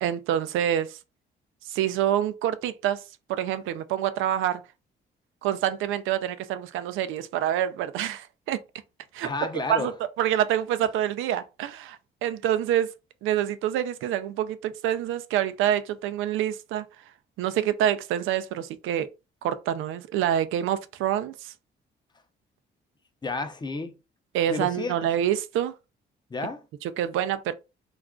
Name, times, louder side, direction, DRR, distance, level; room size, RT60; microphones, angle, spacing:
voice 1, 0.0-1.0 1.7-3.0 3.3-4.6 5.4-8.6 9.1-9.9 10.2-12.9 13.2-16.8 17.4-19.1 19.4-21.5 24.3-25.7 26.8-27.5, right 11 dB, 90° right, 0.4 m, -26 dB
voice 2, 9.2-9.9 23.2-24.0 24.5-25.0 26.3-26.6, left 3 dB, 20° left, 0.6 m, -31 dB
2.4 x 2.2 x 3.6 m
cardioid pair, 90°, 20 cm